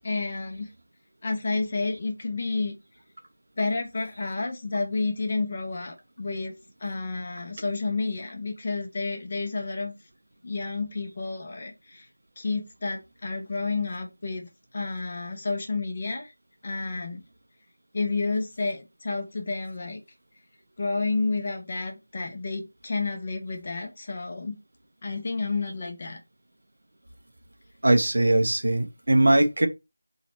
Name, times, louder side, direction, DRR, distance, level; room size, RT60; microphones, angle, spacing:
voice 1, 0.0-0.7 1.2-2.7 3.6-6.5 6.8-9.9 10.4-12.1 12.4-16.3 16.6-17.2 17.9-20.0 20.8-24.6 25.0-26.2, left 3 dB, 30° left, 0.9 m, -30 dB
voice 2, 27.8-29.7, right 1 dB, 55° right, 0.8 m, -20 dB
4.0 x 3.0 x 4.4 m
figure-of-eight pair, 165°, 0 cm